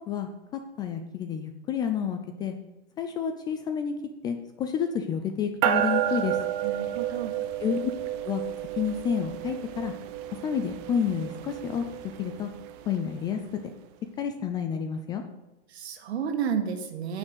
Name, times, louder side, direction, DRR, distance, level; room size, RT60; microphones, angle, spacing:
voice 1, 0.1-2.5 3.0-3.9 4.2-6.4 7.6-7.9 8.2-8.4 8.8-9.9 10.3-11.8 12.2-12.5 12.9-13.4 14.2-15.2, left 7 dB, 15° left, 7 dB, 0.3 m, -30 dB
sound 1, 5.6-13.3, right 11 dB, 35° right, 0.8 m, -31 dB
voice 2, 6.6-7.3 15.7-17.2, right 7 dB, 65° right, 6 dB, 2.0 m, -31 dB
9.7 x 6.4 x 8.0 m, 1.0 s
hypercardioid pair, 135°, 34 cm